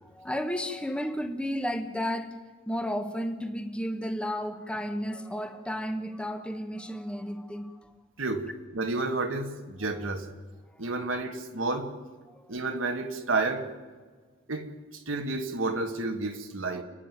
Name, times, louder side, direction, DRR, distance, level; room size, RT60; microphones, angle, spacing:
voice 1, 0.0-2.4 2.7-7.9 10.7-10.9 12.3-12.5 16.7-16.8, equal, 5° left, 1.3 m, -33 dB
voice 2, 8.7-10.3 10.8-11.9 12.5-13.7 14.5-16.8, right 3 dB, 75° right, 1.6 m, -30 dB
29.5 x 10.0 x 9.1 m
head